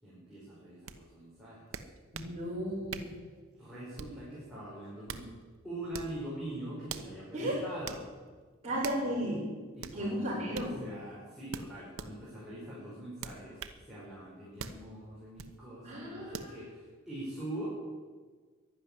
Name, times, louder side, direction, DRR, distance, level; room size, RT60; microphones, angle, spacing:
voice 1, 0.0-1.6 3.6-5.3 5.6-8.1 9.8-13.6 13.9-17.8, right 1 dB, ahead, -9 dB, 5.3 m, -43 dB
sound 1, 0.9-1.0 1.7-2.3 2.9-3.2 4.0-4.3 4.8-5.3 5.9-6.2 6.9-7.1 7.9-8.0 8.8-9.1 9.8-10.0 10.5-10.7 11.5-12.1 13.2-13.8 14.6-14.8 15.4-15.5 16.3-16.5, right 6 dB, 75° right, 1.0 m, -42 dB
voice 2, 2.1-3.1 7.3-7.6 8.6-9.5 9.9-10.8 15.8-16.6, equal, 30° right, -10 dB, 6.0 m, -34 dB
12.0 x 11.5 x 9.9 m, 1.5 s
head